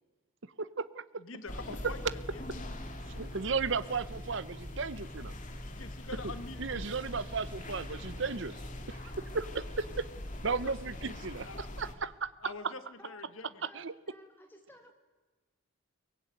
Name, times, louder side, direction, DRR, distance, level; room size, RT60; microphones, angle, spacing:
voice 1, 0.6-1.0 3.1-5.3 6.6-8.6 8.9-10.0 10.4-11.5 11.8-12.3 13.7-13.9, right 4 dB, 60° right, 16 dB, 0.8 m, -35 dB
voice 2, 1.2-2.4 5.6-6.9 10.1-11.7 12.4-13.6, left 3 dB, 75° left, 11 dB, 1.5 m, -46 dB
sound 1, 1.5-11.9, left 1 dB, 35° left, 2.4 m, -42 dB
voice 3, 12.7-13.3 13.6-14.9, left 1 dB, 10° left, 4 dB, 3.4 m, -56 dB
23.5 x 19.0 x 9.3 m, 1.3 s
head